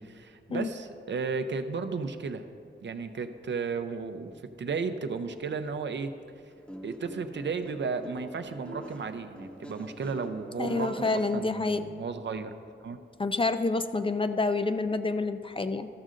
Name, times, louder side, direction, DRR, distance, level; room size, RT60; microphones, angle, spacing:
voice 1, 0.0-2.4 2.8-4.3 4.6-6.1 6.8-12.5 12.8-13.0, right 5 dB, 65° right, 9 dB, 0.5 m, -34 dB
Guitar, 6.5-11.8, equal, 5° left, 0.7 m, -45 dB
voice 2, 10.6-11.8 13.2-15.9, left 3 dB, 25° left, 9 dB, 0.4 m, -28 dB
13.5 x 6.3 x 3.8 m, 2.4 s
wide cardioid pair, 115°, 20 cm